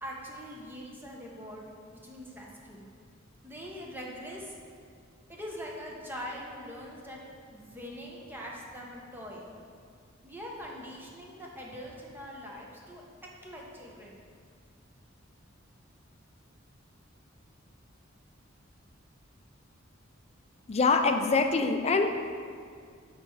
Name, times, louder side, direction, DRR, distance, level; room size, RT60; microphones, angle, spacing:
voice 1, 0.0-1.6 1.9-2.9 3.4-4.5 5.3-7.2 7.5-9.5 10.2-13.0 13.4-14.2, equal, 10° right, -3 dB, 1.1 m, -42 dB
voice 2, 20.7-22.3, left 4 dB, 30° left, 6 dB, 0.5 m, -25 dB
7.6 x 4.4 x 4.8 m, 2.2 s
head